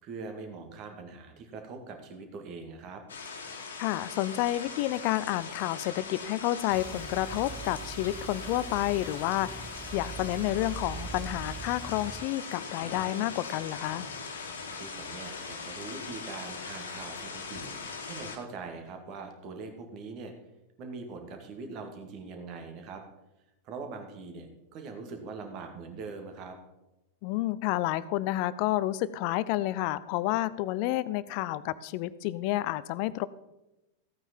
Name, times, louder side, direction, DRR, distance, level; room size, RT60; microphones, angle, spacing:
voice 1, 0.0-3.0 14.7-17.6 18.0-20.3 20.8-23.0 23.6-24.5 24.7-26.6, right 4 dB, 40° right, 4 dB, 2.1 m, -42 dB
sound 1, 3.1-18.4, left 4 dB, 70° left, 1.7 m, -41 dB
voice 2, 3.8-9.6 9.9-14.1 27.2-33.3, left 15 dB, 45° left, 17 dB, 0.5 m, -30 dB
sound 2, 6.7-12.3, right 5 dB, 5° right, 0.7 m, -42 dB
15.0 x 8.9 x 4.5 m, 0.96 s
figure-of-eight pair, 90°, 0 cm